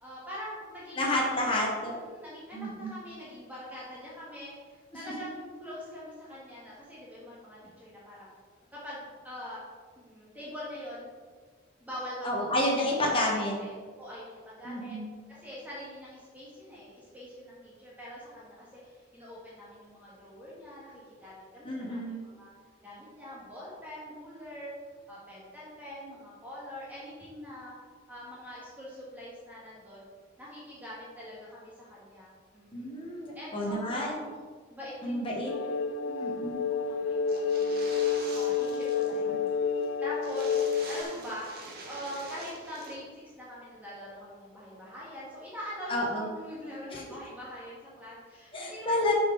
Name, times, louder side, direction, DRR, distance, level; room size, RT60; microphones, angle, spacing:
voice 1, 0.0-1.2 1.8-8.3 8.7-9.6 9.9-11.1 11.8-12.5 12.9-13.0 13.3-15.0 15.3-22.5 22.8-24.7 25.1-27.7 28.1-30.0 30.4-32.9 33.3-34.4 34.7-36.3 36.8-39.4 40.0-41.5 41.8-49.0, equal, 10° right, -7 dB, 1.7 m, -44 dB
voice 2, 1.0-2.0 2.5-2.9 12.2-13.5 14.6-15.1 21.6-22.2 32.7-34.2 35.0-35.5 36.2-36.6 45.9-46.3 46.9-47.0 48.5-49.1, left 1 dB, 25° left, -2 dB, 1.1 m, -30 dB
sound 1, 35.5-41.0, left 6 dB, 75° left, 0.3 m, -29 dB
sound 2, 37.3-39.2 39.5-39.6 39.8-39.9 40.2-42.9, right 2 dB, 50° right, 1.3 m, -45 dB
6.8 x 5.0 x 4.6 m, 1.5 s
head